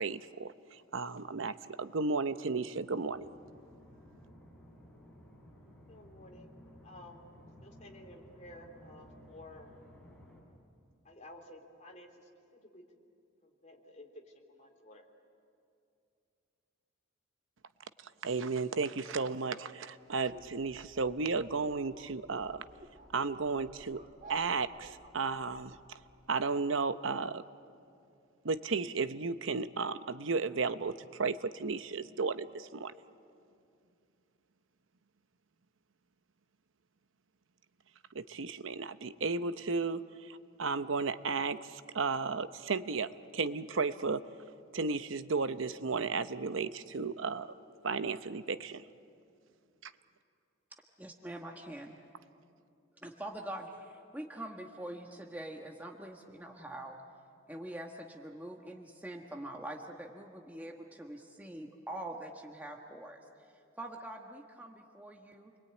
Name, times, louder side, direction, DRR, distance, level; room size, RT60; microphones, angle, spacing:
voice 1, 0.0-3.3 18.2-22.7 23.1-24.0 24.3-25.8 26.3-27.4 28.4-32.9 38.1-44.2 44.7-47.5 47.8-48.8 49.8-49.9, right 4 dB, 75° right, 12 dB, 0.8 m, -34 dB
sound 1, 3.1-10.4, equal, 5° left, 7.3 m, -56 dB
voice 2, 5.9-6.5 6.8-7.2 7.6-9.7 11.0-13.0 13.4-15.1, left 1 dB, 40° left, 0 dB, 3.4 m, -53 dB
sound 2, 20.2-26.3, right 2 dB, 40° right, 1.9 m, -55 dB
voice 3, 51.0-52.0 53.0-57.0 57.5-65.5, right 1 dB, 10° right, 1 dB, 1.3 m, -44 dB
29.0 x 22.5 x 8.9 m, 2.5 s
head